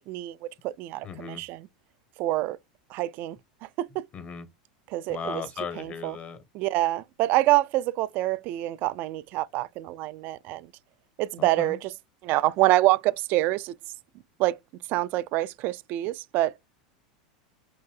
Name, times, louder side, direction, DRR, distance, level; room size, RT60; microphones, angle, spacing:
voice 1, 0.0-1.7 2.2-2.6 2.9-3.4 3.8-4.1 4.9-5.4 5.8-6.2 6.5-10.7 11.2-11.9 12.2-13.7 14.4-14.6 14.9-16.7, right 17 dB, 50° right, 0.3 m, -26 dB
voice 2, 1.0-1.4 4.1-4.5 5.1-6.4 11.4-11.8, left 6 dB, 35° left, 0.9 m, -37 dB
4.6 x 2.6 x 3.2 m
hypercardioid pair, 100°, 4 cm